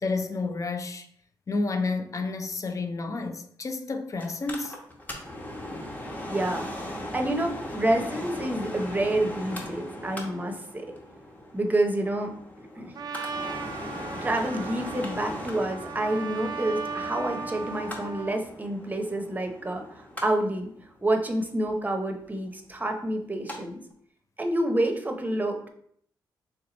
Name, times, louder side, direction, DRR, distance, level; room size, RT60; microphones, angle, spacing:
voice 1, 0.0-1.1 1.5-4.7, left 3 dB, 40° left, 0.5 m, -30 dB
Mechanical fan, 4.2-23.6 23.9-24.0, left 1 dB, 20° left, 1.0 m, -39 dB
voice 2, 6.3-6.7 7.1-10.9 11.5-12.3 12.6-12.9 14.2-20.7 21.0-23.8 24.4-25.7, right 1 dB, 20° right, 0.7 m, -28 dB
Trumpet, 12.9-18.4, right 5 dB, 50° right, 0.4 m, -36 dB
3.3 x 2.9 x 3.9 m
cardioid pair, 65°, 8 cm